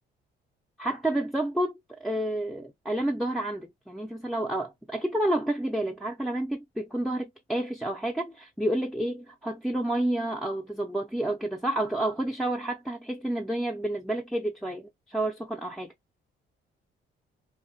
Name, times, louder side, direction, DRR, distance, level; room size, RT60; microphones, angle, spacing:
voice 1, 0.8-1.7 2.0-15.9, right 1 dB, ahead, 0.4 m, -30 dB
2.7 x 2.1 x 2.6 m
cardioid pair, 90°, 20 cm